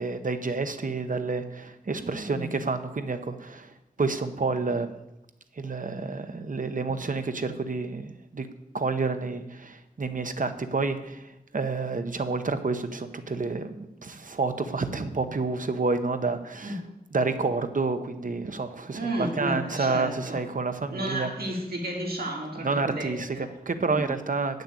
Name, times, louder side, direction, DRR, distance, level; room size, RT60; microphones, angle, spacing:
voice 1, 0.0-3.7 4.0-4.9 5.6-8.5 8.7-16.8 17.1-21.3 22.6-23.4 23.7-24.6, right 3 dB, 60° right, 9 dB, 0.9 m, -29 dB
voice 2, 2.0-2.6 16.6-16.8 18.9-20.4 20.9-23.5 23.9-24.1, right 1 dB, 85° right, -1 dB, 2.7 m, -33 dB
8.6 x 6.6 x 8.2 m, 0.90 s
wide cardioid pair, 80°, 15 cm